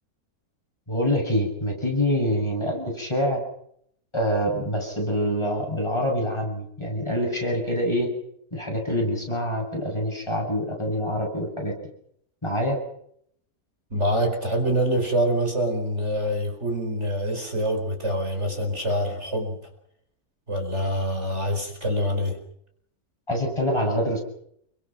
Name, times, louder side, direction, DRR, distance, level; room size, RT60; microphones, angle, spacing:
voice 1, 0.9-3.4 4.1-8.1 8.5-11.7 12.4-12.8 23.3-24.2, equal, 15° left, 0 dB, 7.7 m, -25 dB
voice 2, 13.9-19.6 20.5-22.4, equal, 45° right, 3 dB, 5.0 m, -25 dB
29.0 x 24.0 x 6.1 m, 0.70 s
omnidirectional pair, 1.6 m